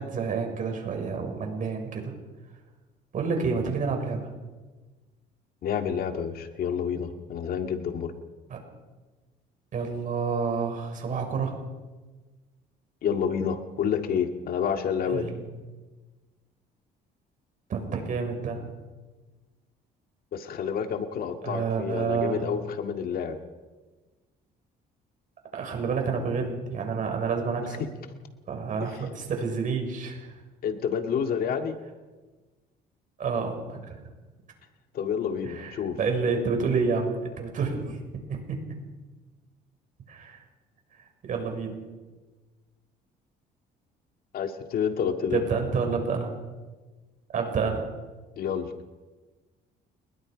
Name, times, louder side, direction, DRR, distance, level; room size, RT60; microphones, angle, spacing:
voice 1, 0.0-2.1 3.1-4.3 8.5-8.6 9.7-11.5 15.1-15.4 17.7-18.6 21.4-22.4 25.5-27.8 28.5-30.3 33.2-34.0 35.4-38.0 38.3-38.6 40.1-40.4 41.2-41.8 45.3-46.3 47.3-47.9, right 5 dB, 50° right, 3 dB, 6.3 m, -29 dB
voice 2, 5.6-8.1 13.0-15.3 20.3-23.4 30.6-31.8 34.9-36.0 44.3-45.4 48.4-48.7, left 7 dB, 60° left, 6 dB, 2.0 m, -29 dB
29.5 x 21.0 x 5.2 m, 1.3 s
cardioid pair, 110°, 17 cm